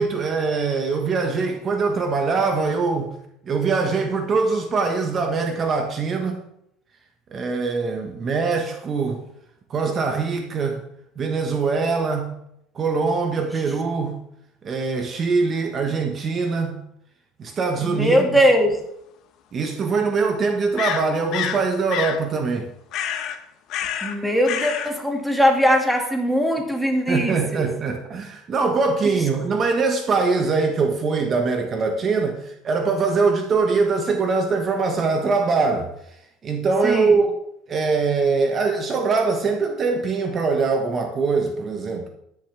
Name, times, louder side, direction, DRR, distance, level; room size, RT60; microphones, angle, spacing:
voice 1, 0.0-3.1 3.4-6.4 7.3-9.2 9.7-10.8 11.2-12.3 12.7-14.2 14.6-16.8 17.4-18.4 19.5-22.7 27.1-35.9 36.4-37.4 37.7-42.1, right 4 dB, 35° right, 1.4 m, -22 dB
voice 2, 17.8-18.8 24.0-27.7 36.8-37.2, equal, ahead, 2.2 m, -20 dB
sound 1, 18.7-18.8 20.8-21.6 21.9-22.2 22.9-23.4 23.7-24.2 24.4-24.9, left 9 dB, 55° left, 1.2 m, -27 dB
13.5 x 10.5 x 3.5 m
supercardioid pair, 120°, 0 cm